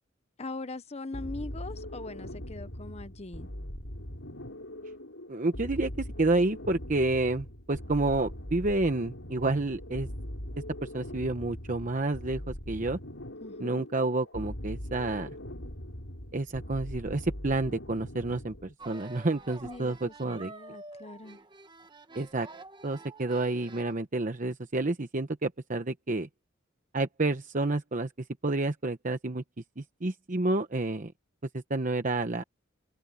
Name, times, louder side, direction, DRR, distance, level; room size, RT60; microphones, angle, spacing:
voice 1, 0.4-3.5 13.4-13.9 19.6-21.4, left 2 dB, 35° left, 0.9 m, -41 dB
sound 1, 1.1-18.7, equal, 80° left, 6.6 m, -41 dB
voice 2, 5.3-10.1 10.8-13.0 13.6-15.3 16.3-20.5 22.1-22.5 22.8-26.3 26.9-28.1 28.4-29.4 29.8-31.1 31.5-32.4, right 2 dB, 40° right, 0.9 m, -29 dB
sound 2, 18.8-23.9, right 3 dB, 25° right, 1.3 m, -48 dB
head